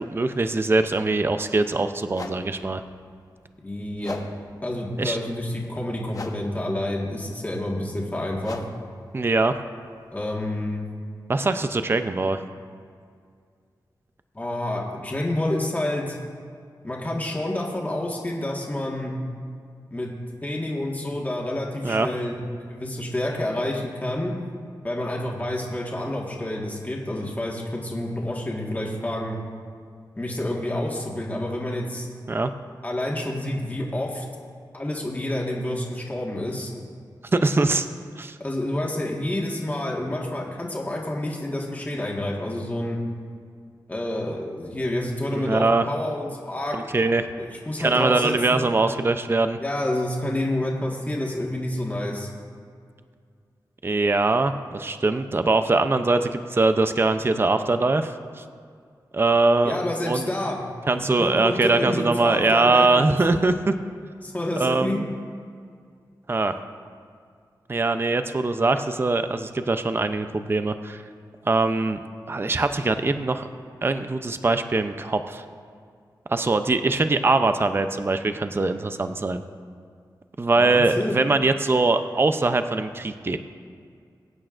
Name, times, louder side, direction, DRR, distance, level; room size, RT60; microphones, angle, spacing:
voice 1, 0.0-2.8 5.0-5.2 9.1-9.5 11.3-12.4 21.8-22.1 32.3-32.5 37.3-37.9 38.2-38.4 45.3-45.9 46.7-47.3 47.8-49.6 53.8-58.4 59.1-59.8 60.1-60.3 60.9-63.7 64.6-65.1 66.3-66.6 67.7-71.0 71.4-72.0 72.3-73.5 73.8-75.4 76.3-79.4 80.4-83.4, right 3 dB, 30° right, 9 dB, 0.5 m, -22 dB
sound 1, 1.3-1.4 2.1-10.9, left 3 dB, 50° left, 0.9 m, -43 dB
voice 2, 3.6-4.2 4.6-8.6 10.1-10.8 14.3-16.2 16.8-19.1 19.9-20.1 20.4-22.4 22.7-24.3 24.8-29.4 30.2-32.1 32.8-34.2 34.7-36.7 38.4-43.0 43.9-46.8 47.4-48.6 49.6-52.3 59.6-60.6 61.0-63.1 64.2-65.0 76.6-76.8 80.5-81.1, left 1 dB, 20° left, -3 dB, 1.6 m, -28 dB
22.0 x 8.8 x 2.5 m, 2.2 s
wide cardioid pair, 80°, 8 cm